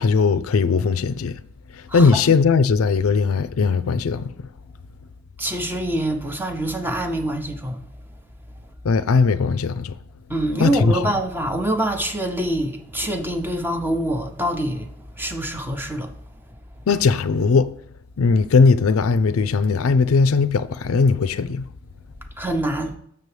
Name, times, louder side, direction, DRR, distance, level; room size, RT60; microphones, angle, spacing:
voice 1, 0.0-1.3 1.9-4.3 8.8-9.9 10.6-11.0 16.9-17.7 18.2-21.7, left 4 dB, 80° left, 0.4 m, -18 dB
voice 2, 1.9-2.2 5.4-7.9 10.3-16.1 22.4-22.9, right 1 dB, 10° right, 0.7 m, -25 dB
6.8 x 6.8 x 3.2 m
head